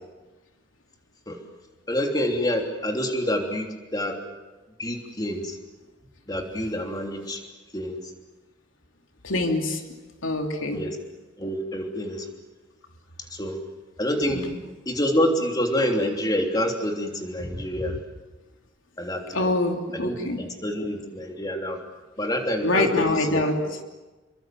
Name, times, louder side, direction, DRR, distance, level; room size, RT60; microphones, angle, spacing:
voice 1, 1.9-4.2 4.8-5.6 6.3-7.4 7.7-8.0 10.7-11.0 11.4-12.2 13.3-13.6 14.0-14.4 14.8-18.0 19.0-19.5 19.9-21.8 22.2-23.4, equal, 20° left, 2 dB, 3.3 m, -27 dB
voice 2, 9.2-9.8 10.2-10.8 14.3-14.6 19.3-20.4 22.6-23.6, left 2 dB, 90° left, 3 dB, 3.1 m, -25 dB
28.5 x 23.5 x 7.7 m, 1.2 s
head